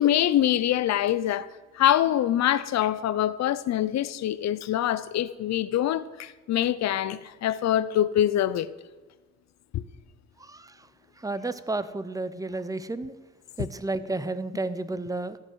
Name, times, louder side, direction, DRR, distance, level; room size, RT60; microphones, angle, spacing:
voice 1, 0.0-1.5 1.7-8.7 9.7-9.8, left 11 dB, 60° left, 0.6 m, -24 dB
voice 2, 10.4-10.7 11.2-13.1 13.6-15.4, right 2 dB, 10° right, 0.5 m, -31 dB
14.5 x 5.6 x 6.3 m
cardioid pair, 90°, 30 cm